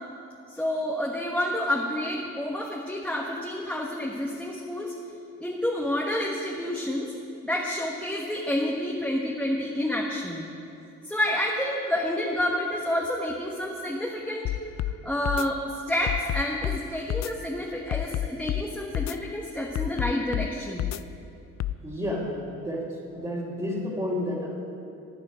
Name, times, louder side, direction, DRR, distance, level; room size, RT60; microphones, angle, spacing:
voice 1, 0.5-4.9 5.4-7.1 7.4-10.5 11.0-14.5 15.0-20.9, left 1 dB, 5° left, -2 dB, 1.3 m, -29 dB
sound 1, 14.4-14.9 15.2-15.5 16.1-16.8 17.1-17.3 17.9-18.6 18.9-19.2 19.7-20.5 20.8-21.0 21.6-21.8, left 13 dB, 65° left, 0.5 m, -28 dB
voice 2, 21.8-24.5, left 1 dB, 15° right, -8 dB, 2.8 m, -31 dB
15.5 x 10.0 x 5.0 m, 2.6 s
cardioid pair, 90°, 30 cm